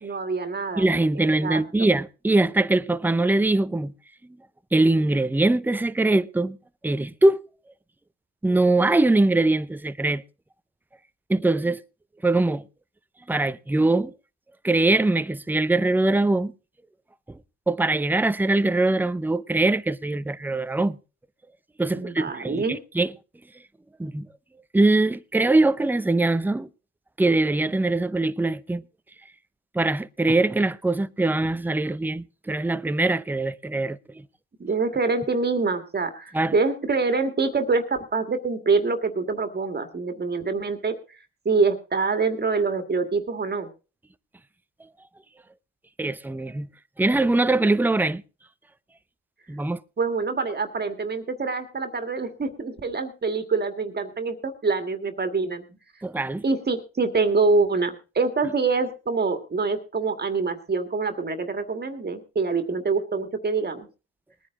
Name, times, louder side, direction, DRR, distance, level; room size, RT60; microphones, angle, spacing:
voice 1, 0.0-0.9 1.4-1.9 21.9-22.8 34.6-41.2 41.5-43.7 50.0-55.6 56.4-63.9, right 4 dB, 35° right, 2.0 m, -25 dB
voice 2, 0.8-3.9 4.7-6.6 6.8-7.4 8.4-10.2 11.3-11.8 12.2-12.6 13.3-14.1 14.6-16.5 17.3-17.4 17.7-21.0 21.8-23.1 24.0-24.3 24.7-26.7 27.2-28.8 29.7-34.2 36.3-36.5 46.0-46.7 47.0-48.2 49.5-49.8 56.0-56.4, right 2 dB, 5° right, 0.7 m, -22 dB
20.5 x 9.7 x 3.8 m
cardioid pair, 90°, 30 cm